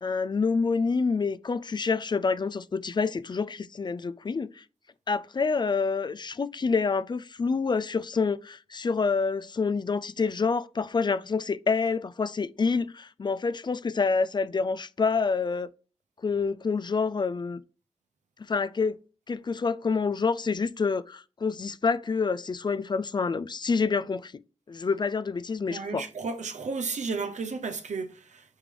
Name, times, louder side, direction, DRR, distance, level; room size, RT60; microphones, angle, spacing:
voice 1, 0.0-4.6 5.1-15.7 16.2-17.6 18.4-19.0 19.3-24.3 24.7-26.1, left 4 dB, 40° left, 0.3 m, -27 dB
voice 2, 25.7-28.6, right 4 dB, 85° right, 0.8 m, -33 dB
8.1 x 3.4 x 3.7 m
wide cardioid pair, 140°, 12 cm